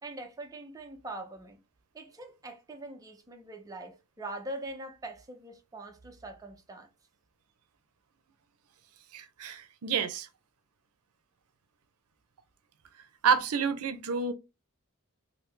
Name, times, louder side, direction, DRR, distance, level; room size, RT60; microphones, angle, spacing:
voice 1, 0.0-1.6 1.9-6.9, right 2 dB, 15° right, 0.5 m, -43 dB
voice 2, 9.1-10.3 13.2-14.3, right 6 dB, 85° right, 0.6 m, -28 dB
3.1 x 2.7 x 3.2 m
head